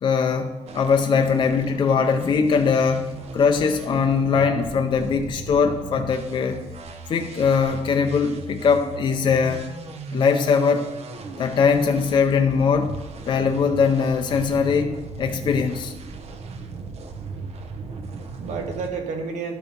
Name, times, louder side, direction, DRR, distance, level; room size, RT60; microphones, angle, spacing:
voice 1, 0.0-6.6 7.1-9.7 10.1-10.9 11.4-13.0 13.3-15.9, left 5 dB, 40° left, 5 dB, 0.5 m, -21 dB
sound 1, 0.7-18.9, right 4 dB, 55° right, 0.8 m, -37 dB
voice 2, 17.0-19.5, right 5 dB, 75° right, 3 dB, 1.3 m, -33 dB
12.0 x 4.5 x 5.2 m, 1.1 s
cardioid pair, 175°, 13 cm